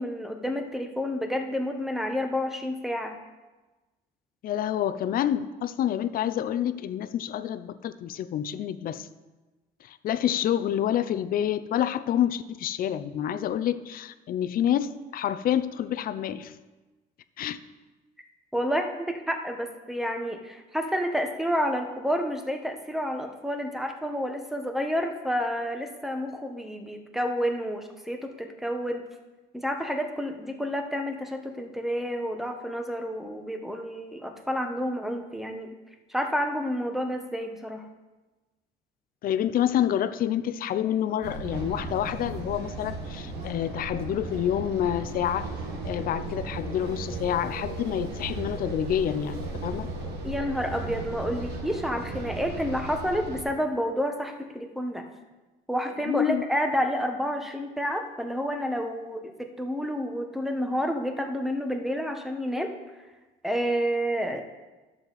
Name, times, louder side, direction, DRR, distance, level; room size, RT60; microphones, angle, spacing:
voice 1, 0.0-3.2 18.5-29.0 29.5-35.7 36.1-37.8 50.2-55.0 55.7-62.7 63.4-64.4, equal, ahead, 4 dB, 1.2 m, -29 dB
voice 2, 4.4-9.1 9.8-16.5 17.4-17.6 39.2-45.5 45.8-49.9 56.1-56.4, left 10 dB, 60° left, 12 dB, 0.6 m, -28 dB
sound 1, 41.2-53.4, right 3 dB, 80° right, 1.6 m, -36 dB
11.5 x 7.3 x 4.1 m, 1.2 s
cardioid pair, 110°, 17 cm